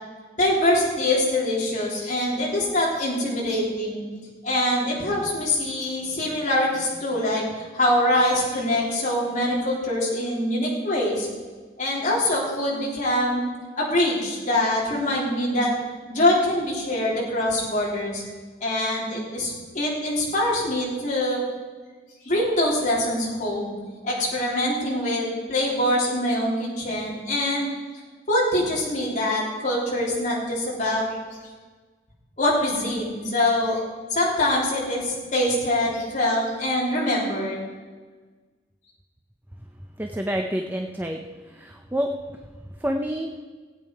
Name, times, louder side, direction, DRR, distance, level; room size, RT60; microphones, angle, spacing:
voice 1, 0.4-4.0 4.4-11.3 11.8-13.4 13.8-15.7 16.1-18.2 18.6-21.4 22.3-23.7 24.0-27.7 28.3-31.1 32.4-33.8 34.1-37.6, left 1 dB, 45° left, -5 dB, 3.5 m, -24 dB
voice 2, 40.0-41.2 41.5-42.1 42.8-43.3, equal, 10° right, 3 dB, 0.6 m, -27 dB
18.0 x 9.0 x 4.7 m, 1.4 s
head